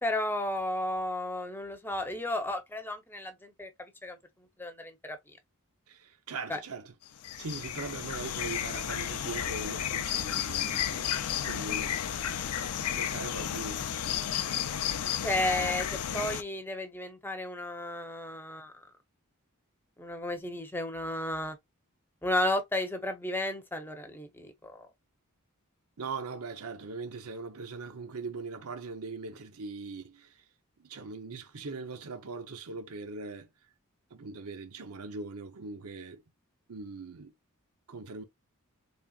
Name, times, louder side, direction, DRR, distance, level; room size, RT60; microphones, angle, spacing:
voice 1, 0.0-4.2 4.6-5.2 6.5-6.6 15.1-18.8 20.0-21.6 22.2-24.9, left 1 dB, 10° left, 0.8 m, -33 dB
voice 2, 5.9-6.9 7.4-11.1 11.4-12.0 12.9-13.8 26.0-30.4 30.8-33.5 34.1-36.2 36.7-37.3 37.9-38.2, right 4 dB, 80° right, 0.8 m, -40 dB
sound 1, 7.1-16.4, left 9 dB, 90° left, 0.5 m, -32 dB
4.2 x 3.5 x 2.4 m
head